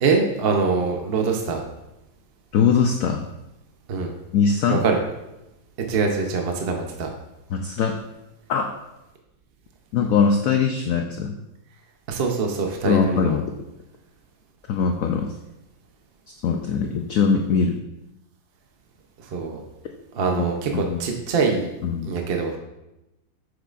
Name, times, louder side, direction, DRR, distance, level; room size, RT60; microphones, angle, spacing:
voice 1, 0.0-1.6 3.9-4.1 4.7-5.0 5.9-7.1 12.1-13.3 19.2-19.6 20.1-21.7 22.0-22.6, right 4 dB, 60° right, 3 dB, 0.6 m, -23 dB
voice 2, 2.5-3.3 4.3-4.8 7.5-8.0 8.5-8.7 9.9-11.3 12.8-13.5 14.7-15.3 16.4-17.8 20.4-20.5 20.7-21.0 21.8-22.1, left 6 dB, 85° left, 4 dB, 0.7 m, -21 dB
7.7 x 6.5 x 2.5 m, 0.92 s
omnidirectional pair, 2.0 m